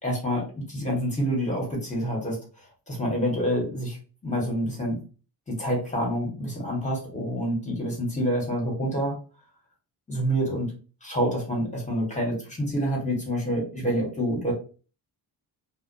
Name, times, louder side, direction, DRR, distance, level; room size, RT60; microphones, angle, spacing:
voice 1, 0.0-2.4 2.9-4.0 4.2-5.0 5.5-9.2 10.1-10.7 11.0-14.5, equal, 15° left, -2 dB, 1.2 m, -27 dB
2.4 x 2.1 x 2.5 m, 0.36 s
wide cardioid pair, 135°, 41 cm